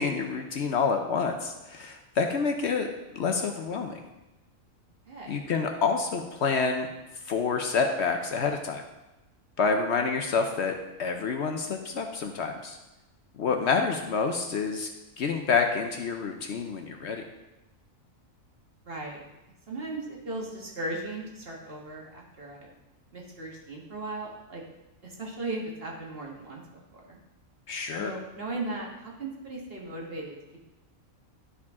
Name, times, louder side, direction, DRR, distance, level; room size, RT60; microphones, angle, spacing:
voice 1, 0.0-2.9 3.1-4.0 5.3-6.9 7.3-8.8 9.6-10.7 11.0-12.8 13.4-14.9 15.2-17.2 27.7-28.1, left 5 dB, 60° left, 4 dB, 0.9 m, -28 dB
voice 2, 5.1-5.4 18.8-19.2 19.7-22.7 23.1-24.6 25.0-26.6 26.9-27.2 28.0-30.3, right 2 dB, 45° right, -2 dB, 1.6 m, -37 dB
11.5 x 4.9 x 3.6 m, 1.0 s
omnidirectional pair, 1.4 m